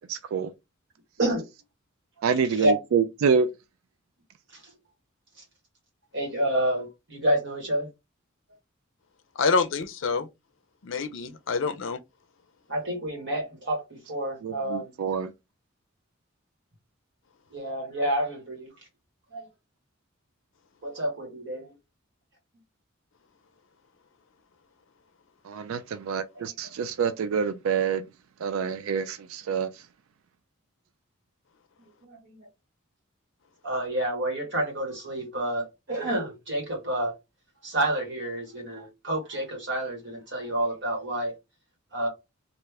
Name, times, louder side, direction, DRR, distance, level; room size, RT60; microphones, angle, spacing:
voice 1, 0.1-0.5 2.2-3.5 14.4-15.3 25.4-28.1 28.4-29.9, right 6 dB, 80° right, 0.3 m, -27 dB
voice 2, 6.1-7.9 12.7-14.9 17.5-18.7 19.3-19.5 20.8-21.7 26.3-26.4 32.0-32.5 33.6-37.1 37.6-41.3 41.9-42.1, right 1 dB, 55° right, 1.7 m, -29 dB
voice 3, 9.4-10.3 10.8-12.0, left 4 dB, 65° left, 0.5 m, -26 dB
3.2 x 2.5 x 3.4 m
head